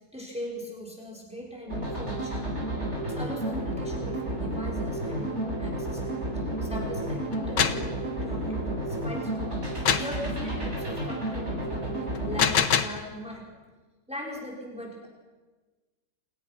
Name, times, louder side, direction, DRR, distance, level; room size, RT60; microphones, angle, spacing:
voice 1, 0.1-2.4 3.0-6.2 6.6-13.4 14.1-15.1, equal, 5° right, -2 dB, 5.7 m, -39 dB
sound 1, 1.7-12.4, right 1 dB, 35° right, 8.2 m, -31 dB
sound 2, 7.3-7.9 9.9-10.2 12.2-13.0, left 8 dB, 75° left, 1.9 m, -24 dB
30.0 x 28.5 x 6.3 m, 1.3 s
omnidirectional pair, 1.9 m